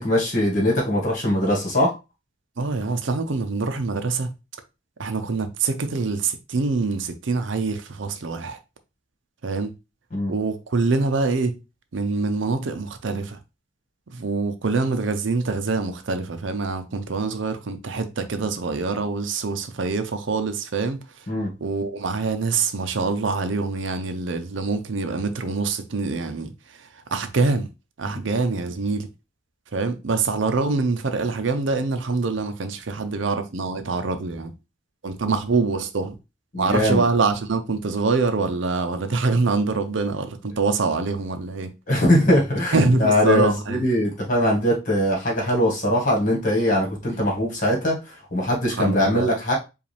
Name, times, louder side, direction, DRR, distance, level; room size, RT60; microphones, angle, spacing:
voice 1, 0.0-1.9 10.1-10.3 21.3-21.5 35.2-35.3 36.5-37.0 41.9-49.5, left 1 dB, 40° left, 1.7 m, -21 dB
voice 2, 2.6-4.3 5.0-8.6 9.4-9.7 10.3-11.6 11.9-13.4 14.1-21.2 21.6-27.7 28.0-29.1 29.7-34.5 35.0-36.1 36.6-41.7 42.7-43.8 48.8-49.3, right 4 dB, 65° right, 0.6 m, -25 dB
4.9 x 2.5 x 3.3 m
head